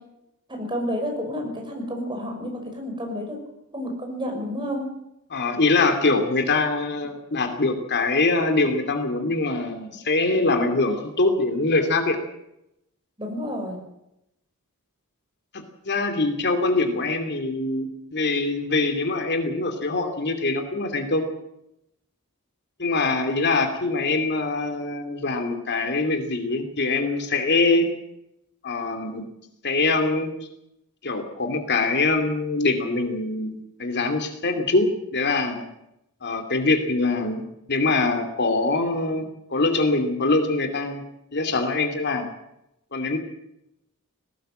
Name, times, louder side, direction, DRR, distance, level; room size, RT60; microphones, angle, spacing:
voice 1, 0.5-3.4 3.7-4.8 13.2-13.8, equal, 20° right, 2 dB, 6.0 m, -30 dB
voice 2, 5.3-12.2 15.5-21.2 22.8-27.9 28.6-29.2 29.6-30.3 31.0-33.5 33.8-35.6 36.2-39.2 39.5-41.0 41.3-42.3 42.9-43.2, left 3 dB, 50° left, 6 dB, 2.7 m, -23 dB
19.5 x 17.5 x 7.7 m, 0.84 s
head